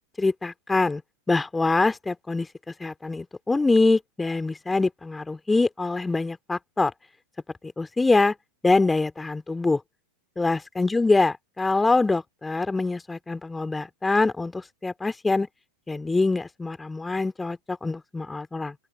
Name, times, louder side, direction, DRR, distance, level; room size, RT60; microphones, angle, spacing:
voice 1, 0.2-1.0 1.3-2.5 2.8-6.9 7.6-8.3 8.6-9.8 10.4-15.5 15.9-18.7, left 3 dB, 10° left, 2.5 m, -24 dB
open air
figure-of-eight pair, 90°, 0 cm